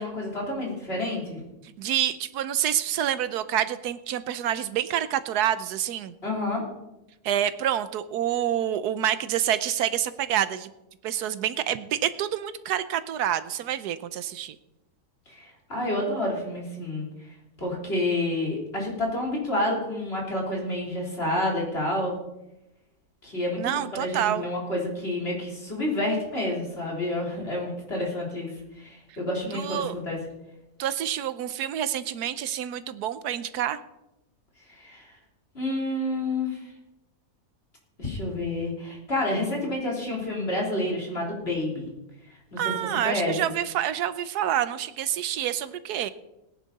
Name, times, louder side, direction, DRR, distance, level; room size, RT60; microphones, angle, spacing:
voice 1, 0.0-1.4 6.2-6.6 15.3-17.1 17.6-22.2 23.2-28.5 28.8-30.2 34.7-35.2 35.5-36.6 38.0-41.9 42.5-42.7 43.0-43.3, left 1 dB, 40° left, -2 dB, 3.9 m, -29 dB
voice 2, 1.8-6.1 7.2-10.7 11.0-14.6 23.6-24.5 29.5-29.9 30.8-33.8 42.6-46.1, right 10 dB, 85° right, 13 dB, 1.3 m, -27 dB
18.5 x 10.5 x 4.1 m, 0.91 s
omnidirectional pair, 1.6 m